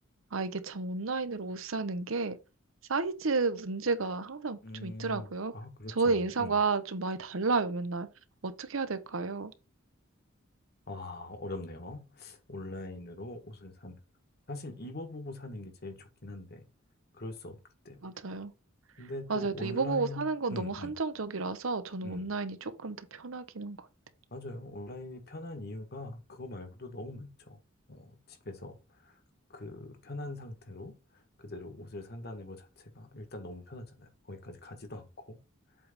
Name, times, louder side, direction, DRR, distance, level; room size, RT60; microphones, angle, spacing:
voice 1, 0.3-2.4 2.9-5.5 6.0-8.1 8.4-9.5 18.0-18.5 19.3-23.8, right 4 dB, 75° right, 0.9 m, -32 dB
voice 2, 4.6-5.3 5.5-6.5 10.9-14.0 14.5-16.7 17.1-17.6 17.8-18.2 19.0-20.9 22.0-22.3 24.3-27.6 27.9-29.2 29.5-35.4, left 2 dB, 50° left, 1.6 m, -43 dB
7.7 x 3.4 x 5.0 m
head